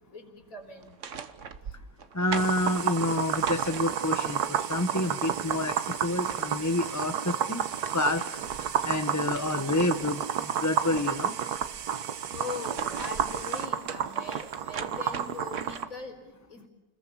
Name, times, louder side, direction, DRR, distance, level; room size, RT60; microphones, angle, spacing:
voice 1, 0.1-0.9 12.3-16.7, left 4 dB, 60° left, 3 dB, 4.6 m, -41 dB
sound 1, 0.8-4.3 5.8-5.9 6.1-6.9 7.5-10.1 10.5-11.8 12.4-16.1, right 6 dB, 55° right, 1.4 m, -41 dB
voice 2, 2.1-5.7 6.0-7.6 7.9-8.2 8.6-10.2 10.6-11.3, left 2 dB, 15° left, 6 dB, 1.0 m, -28 dB
sound 2, 2.3-15.9, right 8 dB, 85° right, 1.6 m, -31 dB
29.5 x 21.0 x 7.1 m, 1.0 s
omnidirectional pair, 1.6 m